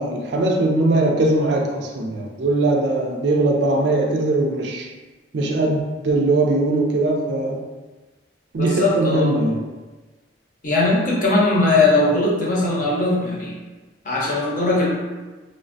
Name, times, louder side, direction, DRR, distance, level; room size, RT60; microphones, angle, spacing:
voice 1, 0.0-4.9 5.3-7.6 8.5-9.7, right 2 dB, 65° right, 1 dB, 0.4 m, -20 dB
voice 2, 8.6-9.3 10.6-13.5 14.0-14.9, left 2 dB, 45° left, -4 dB, 0.7 m, -19 dB
3.2 x 2.1 x 2.6 m, 1.2 s
head